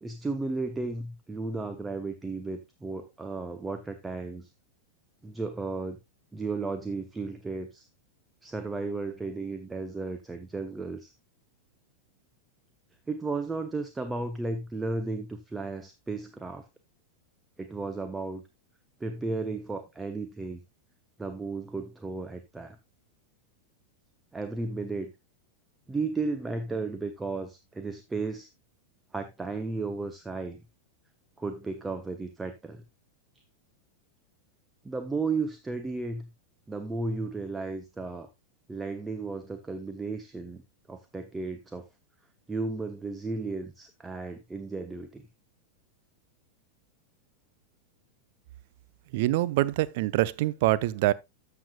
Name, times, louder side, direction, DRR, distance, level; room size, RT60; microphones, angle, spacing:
voice 1, 0.0-4.5 5.2-6.0 6.3-7.9 8.4-11.1 13.1-16.7 17.6-18.4 19.0-20.6 21.2-22.8 24.3-25.1 25.9-28.5 29.1-30.6 31.4-32.8 34.8-36.3 36.7-38.3 38.7-40.6 40.9-41.9 42.5-45.3, right 3 dB, 10° right, 0.8 m, -34 dB
voice 2, 49.1-51.1, right 16 dB, 50° right, 0.5 m, -25 dB
13.0 x 6.9 x 2.3 m
figure-of-eight pair, 90°, 0 cm